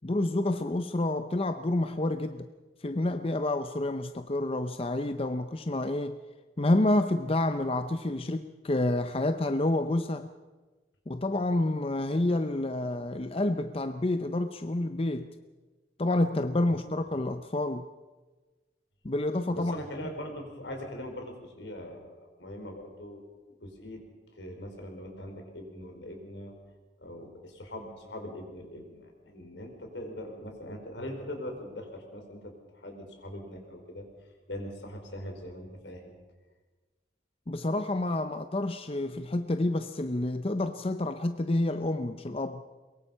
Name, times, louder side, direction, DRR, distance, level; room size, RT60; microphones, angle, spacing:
voice 1, 0.0-2.5 2.8-6.2 6.6-10.3 11.1-15.3 16.0-17.9 19.0-19.8 37.5-42.6, left 2 dB, 30° left, 9 dB, 0.6 m, -29 dB
voice 2, 19.5-23.2 23.6-24.0 24.3-26.5 27.0-34.0 34.5-36.2, left 1 dB, 80° left, 3 dB, 4.9 m, -41 dB
22.5 x 22.5 x 5.6 m, 1.3 s
head